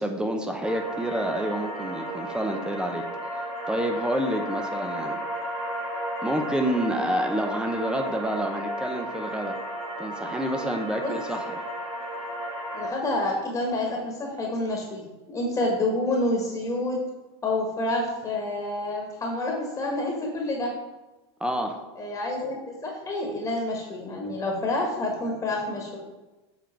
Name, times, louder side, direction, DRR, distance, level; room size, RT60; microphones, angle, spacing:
voice 1, 0.0-3.1 3.7-5.2 6.2-9.6 10.0-11.6 21.4-21.8, equal, 5° right, 4 dB, 0.7 m, -28 dB
sound 1, 0.6-12.9, right 1 dB, 35° right, 1.8 m, -34 dB
voice 2, 12.7-17.0 17.4-20.7 21.9-26.0, left 2 dB, 20° left, -1 dB, 1.5 m, -28 dB
7.3 x 3.8 x 4.5 m, 1.1 s
supercardioid pair, 115°, 15 cm